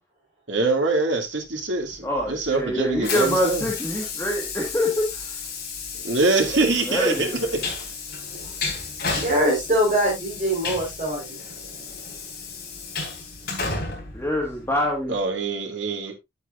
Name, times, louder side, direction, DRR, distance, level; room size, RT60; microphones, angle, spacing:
voice 1, 0.5-3.7 6.0-7.3 15.1-16.1, right 3 dB, 90° right, 2.4 m, -24 dB
Train, 1.9-15.1, left 4 dB, 55° left, 3.6 m, -33 dB
voice 2, 2.0-5.3 6.8-7.7 14.1-15.2, left 1 dB, 15° left, 1.6 m, -25 dB
voice 3, 9.0-11.4, equal, 40° right, 4.2 m, -23 dB
10.5 x 8.0 x 2.5 m
head